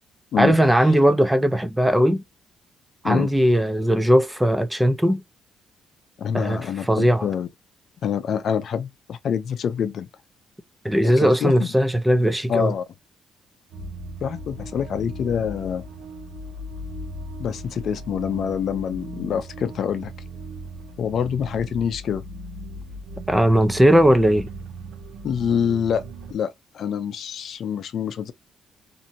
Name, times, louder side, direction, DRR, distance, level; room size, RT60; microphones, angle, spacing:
voice 1, 0.4-2.2 3.0-5.2 6.3-7.3 10.8-12.7 23.3-24.5, equal, 5° right, 0.5 m, -18 dB
voice 2, 6.2-7.5 8.0-10.1 11.0-11.7 12.5-12.8 14.2-15.9 17.4-20.1 21.0-22.2 25.2-26.0 26.3-28.3, left 8 dB, 65° left, 0.5 m, -26 dB
sound 1, 13.7-26.3, right 1 dB, 85° right, 0.7 m, -37 dB
2.7 x 2.6 x 2.5 m
cardioid pair, 90°, 0 cm